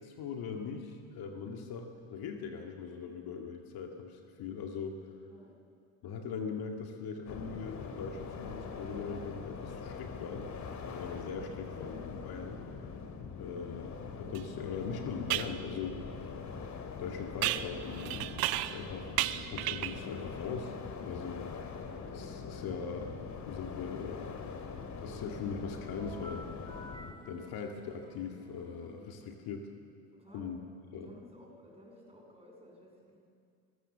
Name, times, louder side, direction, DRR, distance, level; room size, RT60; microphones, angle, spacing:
voice 1, 0.0-5.1 6.0-10.5 10.9-12.9 13.2-16.4 17.0-20.7 21.0-21.5 22.1-24.3 25.0-26.7 27.3-29.7 30.3-30.6 30.9-31.1, left 5 dB, 60° left, 3 dB, 2.1 m, -41 dB
sound 1, 7.3-27.1, left 5 dB, 45° left, 2.3 m, -43 dB
voice 2, 14.2-14.5 30.1-30.8 31.0-33.2, equal, 15° right, -1 dB, 7.6 m, -56 dB
sound 2, 14.3-14.4 15.3-15.6 17.4-18.9 19.2-20.1, right 15 dB, 60° right, 0.8 m, -33 dB
sound 3, 26.0-29.6, left 1 dB, 10° left, 2.0 m, -52 dB
24.0 x 16.0 x 7.4 m, 2.4 s
hypercardioid pair, 65°, 40 cm